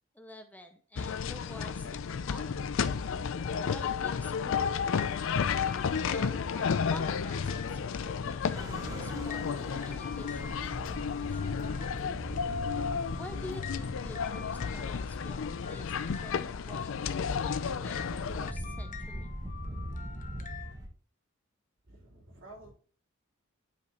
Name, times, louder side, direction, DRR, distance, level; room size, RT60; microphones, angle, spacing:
voice 1, 0.1-2.6 3.7-4.9 6.1-11.6 13.2-17.0 17.4-19.3, left 1 dB, 10° left, 0.6 m, -48 dB
sound 1, 0.9-18.5, left 6 dB, 65° left, 0.4 m, -32 dB
sound 2, 3.4-20.7, left 7 dB, 40° left, 0.9 m, -47 dB
sound 3, 8.5-20.9, equal, 15° right, 1.2 m, -42 dB
voice 2, 21.9-22.7, right 1 dB, 65° right, 4.0 m, -51 dB
9.5 x 5.2 x 3.0 m
head